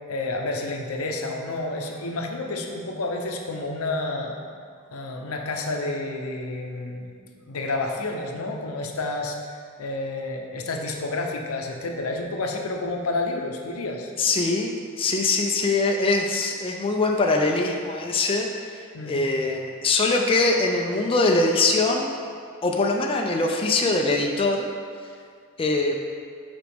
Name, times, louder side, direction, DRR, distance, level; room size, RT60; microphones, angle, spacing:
voice 1, 0.1-4.4 4.9-7.1 7.4-14.1 18.9-19.2, left 2 dB, 80° left, 2 dB, 0.7 m, -30 dB
voice 2, 14.2-18.5 18.7-22.1 22.6-24.7 25.6-26.0, left 3 dB, 25° left, 1 dB, 0.4 m, -23 dB
7.5 x 5.1 x 3.5 m, 2.2 s
head